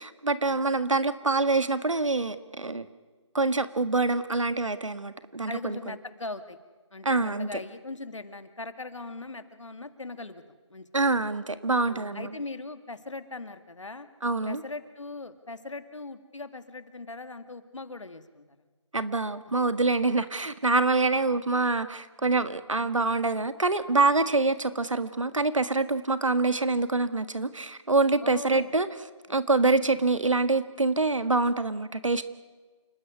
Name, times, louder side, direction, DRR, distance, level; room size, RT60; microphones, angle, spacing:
voice 1, 0.0-2.9 3.3-5.8 7.0-7.5 10.9-12.3 14.2-14.6 18.9-28.9 29.3-32.2, right 3 dB, 80° right, 12 dB, 1.7 m, -25 dB
voice 2, 5.5-6.6 6.9-10.9 11.7-14.1 14.4-18.7 21.1-21.4 22.8-23.0 28.2-28.7 29.3-29.6, left 3 dB, 75° left, 10 dB, 2.2 m, -40 dB
28.5 x 13.0 x 9.6 m, 1.3 s
figure-of-eight pair, 165°, 16 cm